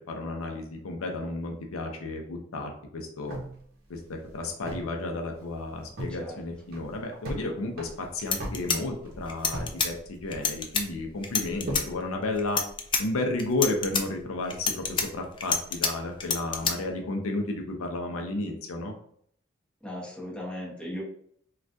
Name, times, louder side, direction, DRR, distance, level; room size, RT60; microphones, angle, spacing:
voice 1, 0.1-3.4 3.9-12.6 13.0-18.9, left 2 dB, 90° left, 3 dB, 0.5 m, -32 dB
sound 1, 3.3-5.0 5.3-5.4 5.7-6.2 6.6-7.4 7.7-9.8 10.0-10.7 11.2-12.0, right 1 dB, 50° right, 0.8 m, -37 dB
sound 2, 7.9-8.0 8.2-9.9 10.3-10.8 11.2-11.8 12.4-13.0 13.4-14.0 14.5-15.9 16.2-16.7, left 5 dB, 25° left, 0.3 m, -27 dB
voice 2, 19.8-21.0, equal, 5° left, -6 dB, 1.0 m, -37 dB
3.3 x 2.3 x 2.6 m, 0.64 s
head